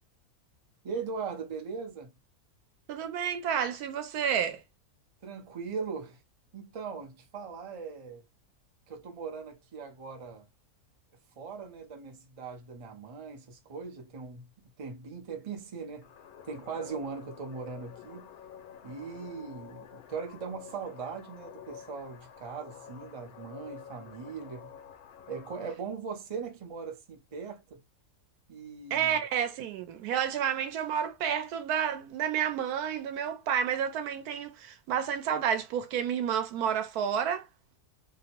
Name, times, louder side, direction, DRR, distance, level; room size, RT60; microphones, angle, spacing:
voice 1, 0.8-2.1 5.2-6.2 6.5-8.2 8.9-10.5 11.4-14.5 14.8-16.1 16.4-18.3 18.8-24.7 25.3-27.8 28.5-29.2, right 5 dB, 45° right, 0.4 m, -40 dB
voice 2, 2.9-4.6 28.9-37.5, right 8 dB, 90° right, 1.1 m, -30 dB
sound 1, 16.0-25.8, left 8 dB, 80° left, 1.1 m, -49 dB
2.7 x 2.0 x 2.8 m
omnidirectional pair, 1.6 m